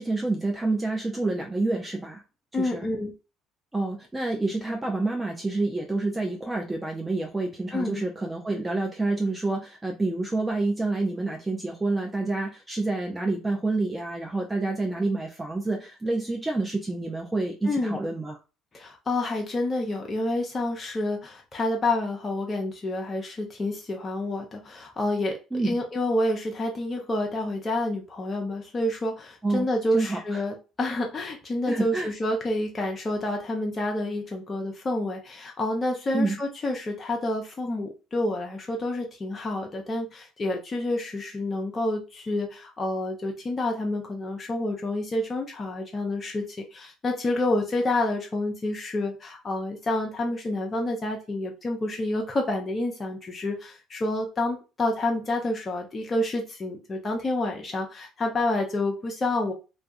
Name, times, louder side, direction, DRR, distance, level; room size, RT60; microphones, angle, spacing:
voice 1, 0.0-2.2 2.6-2.9 3.7-18.3 25.5-25.8 29.4-29.7 29.9-30.4 31.7-32.1 36.1-36.3, right 2 dB, 15° right, 1 dB, 0.5 m, -28 dB
voice 2, 2.5-3.1 7.7-8.1 17.6-18.0 18.7-59.5, left 2 dB, 30° left, 1 dB, 0.6 m, -28 dB
2.3 x 2.2 x 2.5 m, 0.31 s
hypercardioid pair, 60°, 0 cm